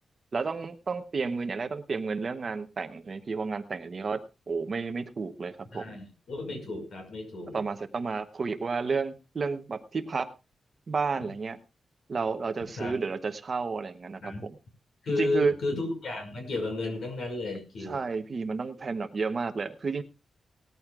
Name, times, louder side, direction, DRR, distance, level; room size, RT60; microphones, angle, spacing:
voice 1, 0.3-6.0 7.5-10.3 10.9-11.6 12.1-14.5 15.2-15.5 17.8-20.0, right 4 dB, 35° right, 9 dB, 0.9 m, -31 dB
voice 2, 5.7-7.6 12.8-12.9 14.2-14.5 15.0-18.0, left 2 dB, 65° left, 4 dB, 5.6 m, -32 dB
19.0 x 13.5 x 2.4 m, 0.29 s
wide cardioid pair, 175°, 0 cm